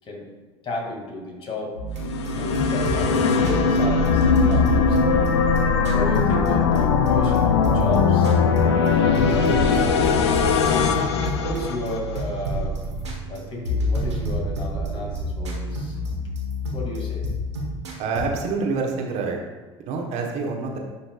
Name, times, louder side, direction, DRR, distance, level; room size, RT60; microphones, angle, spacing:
voice 1, 0.6-1.8 2.3-5.5 5.9-10.9 11.4-12.8 13.3-16.0 16.7-17.2, left 2 dB, 40° left, -1 dB, 2.3 m, -34 dB
sound 1, 1.7-18.3, left 1 dB, 80° right, 1.3 m, -28 dB
sound 2, 2.0-12.2, left 5 dB, 75° left, 0.5 m, -20 dB
voice 2, 18.0-19.4 19.9-20.8, right 4 dB, 50° right, 1 dB, 1.2 m, -26 dB
9.7 x 5.9 x 2.4 m, 1.3 s
figure-of-eight pair, 65°, 14 cm